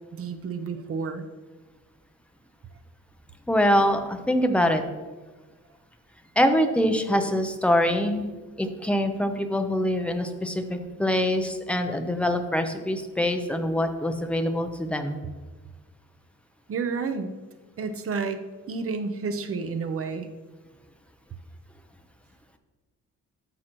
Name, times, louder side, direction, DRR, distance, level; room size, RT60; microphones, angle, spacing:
voice 1, 0.1-1.2 16.7-17.3 17.8-18.4 18.7-20.3, right 5 dB, 45° right, 8 dB, 0.6 m, -30 dB
voice 2, 3.5-4.8 6.4-8.3 8.6-15.2, equal, 5° left, 6 dB, 0.5 m, -24 dB
13.5 x 6.3 x 3.0 m, 1.3 s
wide cardioid pair, 180°, 33 cm